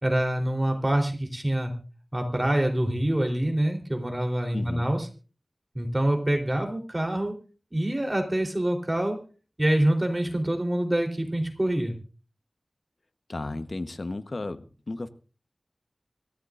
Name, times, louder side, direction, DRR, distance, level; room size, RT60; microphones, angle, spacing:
voice 1, 0.0-1.7 2.1-5.1 5.8-7.3 7.7-9.2 9.6-12.0, right 1 dB, 30° right, 3 dB, 3.6 m, -25 dB
voice 2, 4.5-4.9 13.3-15.1, left 2 dB, 65° left, 11 dB, 1.0 m, -34 dB
25.0 x 14.5 x 2.5 m, 0.36 s
wide cardioid pair, 60°, 0 cm